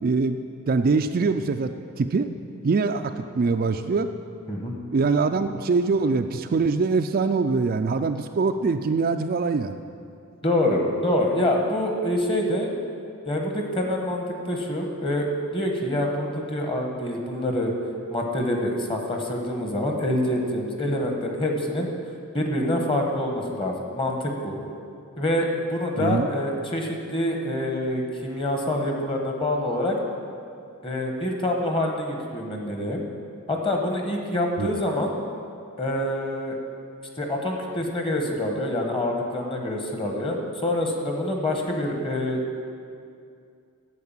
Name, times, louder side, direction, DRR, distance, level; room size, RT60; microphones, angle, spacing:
voice 1, 0.0-2.3 2.6-4.1 4.9-9.8 26.0-26.3 34.6-34.7, right 4 dB, 40° right, 7 dB, 0.3 m, -23 dB
voice 2, 10.4-12.7 13.3-15.3 15.5-17.7 18.1-21.9 22.3-24.6 25.2-30.0 30.8-33.0 33.5-35.1 35.8-36.6 37.2-42.4, left 1 dB, 25° left, 2 dB, 1.3 m, -26 dB
9.5 x 7.8 x 7.3 m, 2.4 s
head